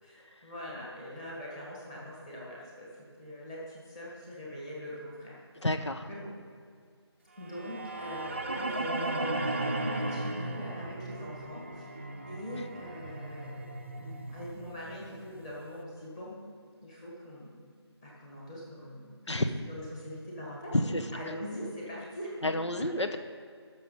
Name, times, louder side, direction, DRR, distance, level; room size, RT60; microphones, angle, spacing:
voice 1, 0.0-5.4 6.1-6.3 7.4-13.7 14.0-16.4 16.8-17.6 18.0-19.4 19.7-22.5, equal, 10° left, -5 dB, 1.6 m, -42 dB
voice 2, 5.6-6.1 19.3-19.5 20.9-21.0 22.4-23.2, left 1 dB, 90° left, 7 dB, 1.2 m, -30 dB
sound 1, 7.5-15.5, right 2 dB, 25° right, 0.5 m, -36 dB
13.0 x 6.3 x 5.5 m, 2.2 s
figure-of-eight pair, 170°, 15 cm